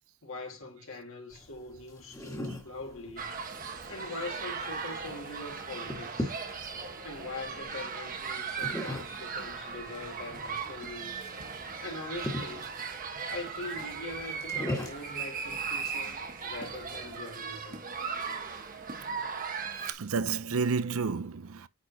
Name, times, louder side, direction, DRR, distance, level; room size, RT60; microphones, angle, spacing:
voice 1, 0.2-3.3 3.9-6.4 7.0-11.3 11.8-12.7 13.3-17.8, left 2 dB, 60° left, 2.0 m, -42 dB
sound 1, 1.3-17.2, left 1 dB, 15° left, 1.6 m, -42 dB
sound 2, 3.2-19.9, right 5 dB, 40° right, 1.1 m, -38 dB
voice 2, 19.8-21.7, right 5 dB, 70° right, 0.6 m, -30 dB
9.4 x 4.2 x 2.7 m
head